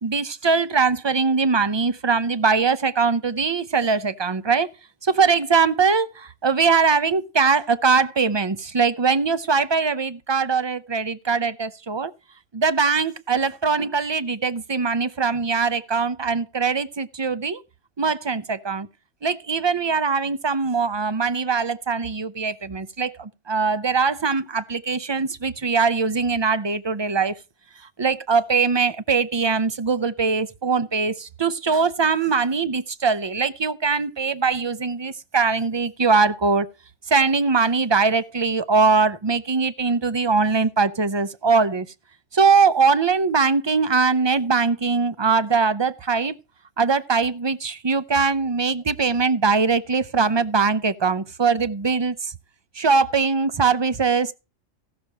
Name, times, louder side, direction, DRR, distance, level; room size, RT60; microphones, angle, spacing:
voice 1, 0.0-4.7 5.0-12.1 12.5-17.6 18.0-18.9 19.2-27.3 28.0-36.7 37.1-41.9 42.3-46.4 46.8-52.3 52.8-54.3, right 5 dB, 35° right, 0.4 m, -21 dB
15.5 x 6.7 x 4.5 m
omnidirectional pair, 1.3 m